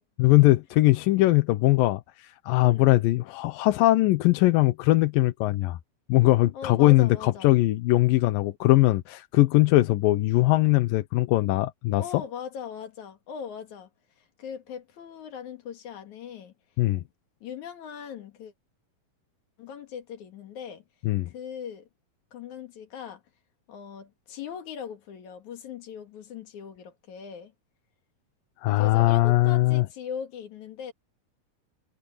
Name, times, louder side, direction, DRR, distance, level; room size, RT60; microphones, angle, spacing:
voice 1, 0.2-5.8 6.1-12.2 16.8-17.0 21.1-21.3 28.6-29.9, left 18 dB, 90° left, 2.6 m, -21 dB
voice 2, 2.6-2.9 6.5-7.5 12.0-13.9 14.2-16.5 17.4-18.5 19.6-20.8 21.3-21.9 22.3-23.2 23.7-27.5 28.8-30.9, left 8 dB, 65° left, 3.2 m, -39 dB
omnidirectional pair, 3.9 m